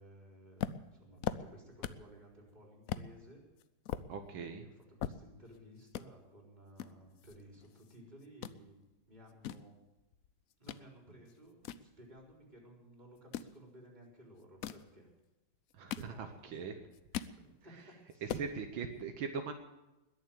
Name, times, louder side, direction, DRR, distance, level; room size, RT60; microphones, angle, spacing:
voice 1, 0.0-3.4 4.3-9.8 10.6-15.1 15.9-16.9 17.4-18.4, equal, 20° right, -1 dB, 4.2 m, -57 dB
sound 1, 0.6-2.1 2.5-2.6 2.9-3.1 3.6-5.6 5.9-6.1 6.8-8.0 8.2-8.6 9.1-10.8 11.2-12.5 13.2-13.6 14.4-14.9 15.5-16.5 16.8-17.4 17.8-17.9 18.1-18.5, left 10 dB, 75° left, 0.7 m, -41 dB
voice 2, 4.1-4.7 15.7-16.7 17.2-17.4 18.2-19.5, right 5 dB, 80° right, 6 dB, 1.9 m, -40 dB
21.0 x 7.3 x 9.0 m, 1.0 s
omnidirectional pair, 2.2 m